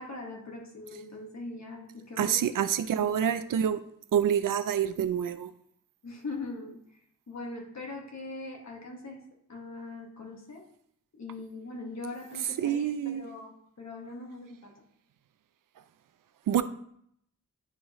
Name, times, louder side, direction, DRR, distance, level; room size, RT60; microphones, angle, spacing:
voice 1, 0.0-2.4 3.0-3.3 6.0-6.8 7.3-9.2 9.5-10.7 11.2-14.8, left 2 dB, 60° left, 0 dB, 1.6 m, -41 dB
voice 2, 2.2-3.8 4.1-5.5 12.6-13.3 16.5-16.6, right 9 dB, 85° right, 12 dB, 0.5 m, -27 dB
10.0 x 3.6 x 3.1 m, 0.69 s
wide cardioid pair, 80°, 32 cm